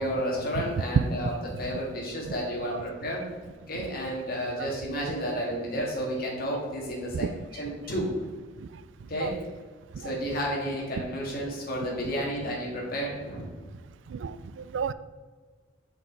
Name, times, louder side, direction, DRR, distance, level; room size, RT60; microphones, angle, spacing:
voice 1, 0.0-1.3 1.6-3.2 3.7-7.3 7.5-8.1 9.1-9.4 10.0-13.6, equal, 50° left, -2 dB, 1.9 m, -31 dB
voice 2, 14.1-14.9, right 6 dB, 75° right, 15 dB, 0.3 m, -33 dB
6.0 x 5.6 x 4.0 m, 1.4 s
head